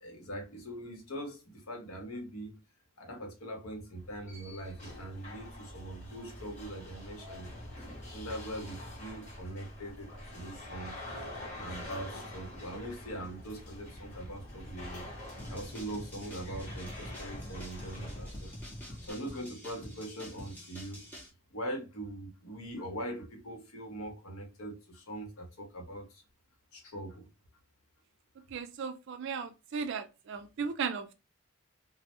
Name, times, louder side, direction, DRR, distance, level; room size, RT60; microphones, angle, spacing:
voice 1, 0.0-2.6 3.0-7.5 8.1-10.9 11.5-15.0 15.5-18.5 19.0-21.0 21.5-26.2 26.7-27.3, right 1 dB, 85° left, 0.9 m, -42 dB
sound 1, 4.0-19.1, left 1 dB, 35° left, 1.0 m, -45 dB
sound 2, 15.4-21.3, equal, 10° left, 0.6 m, -47 dB
voice 2, 28.5-31.1, right 6 dB, 55° right, 0.3 m, -36 dB
2.1 x 2.0 x 2.9 m
head